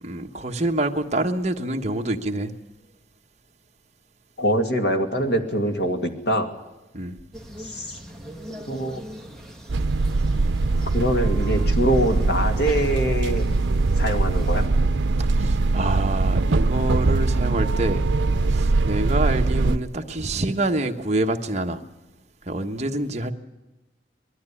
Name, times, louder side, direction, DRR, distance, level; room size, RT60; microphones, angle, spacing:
voice 1, 0.0-2.5 6.9-7.2 15.2-18.0 18.5-21.8 22.4-23.3, right 2 dB, 40° right, 4 dB, 1.3 m, -26 dB
voice 2, 4.4-6.5 7.6-8.0 8.7-9.0 10.9-13.5 14.0-14.7, equal, 65° left, 5 dB, 2.4 m, -24 dB
sound 1, 7.3-14.7, equal, ahead, 1.7 m, -41 dB
sound 2, 9.7-19.8, right 3 dB, 90° right, 0.6 m, -22 dB
20.5 x 13.5 x 9.9 m, 1.1 s
head